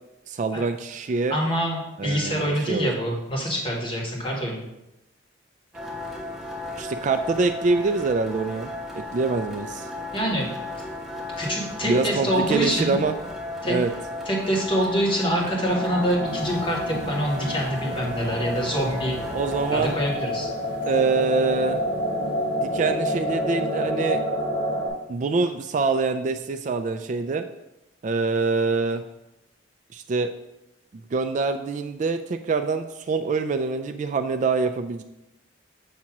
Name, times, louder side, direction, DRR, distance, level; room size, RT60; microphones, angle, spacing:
voice 1, 0.3-1.4 2.0-2.9 6.8-8.7 9.1-9.9 11.8-13.1 13.6-13.9 19.3-19.9 20.9-21.8 22.6-24.2 25.1-27.4 28.0-29.0 29.9-30.3 30.9-35.0, right 4 dB, 40° right, 8 dB, 0.3 m, -25 dB
voice 2, 1.3-4.6 10.1-10.5 11.4-13.0 13.6-13.7 14.2-19.2 19.7-20.5, equal, 25° left, -2 dB, 1.5 m, -25 dB
sound 1, 5.7-20.0, left 2 dB, ahead, 0.8 m, -35 dB
sound 2, 15.6-24.9, equal, 65° left, 2.6 m, -29 dB
sound 3, 16.2-25.3 25.8-26.0 26.3-26.4, right 1 dB, 55° right, 0.9 m, -45 dB
7.3 x 2.9 x 5.9 m, 0.90 s
head